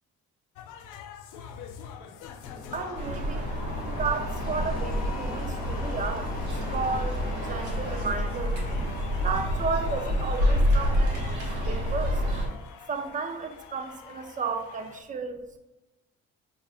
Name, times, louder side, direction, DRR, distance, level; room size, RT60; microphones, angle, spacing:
sound 1, 0.6-15.0, left 7 dB, 85° left, 0.5 m, -44 dB
sound 2, 2.4-8.1, left 2 dB, 30° left, 0.9 m, -42 dB
voice 1, 2.7-3.5 3.8-6.4 6.6-8.6 9.1-11.3 11.6-12.2 12.9-15.6, right 4 dB, 25° right, 0.5 m, -33 dB
sound 3, 2.9-12.5, equal, 80° right, 1.3 m, -28 dB
6.2 x 2.3 x 2.4 m
cardioid pair, 90°, 30 cm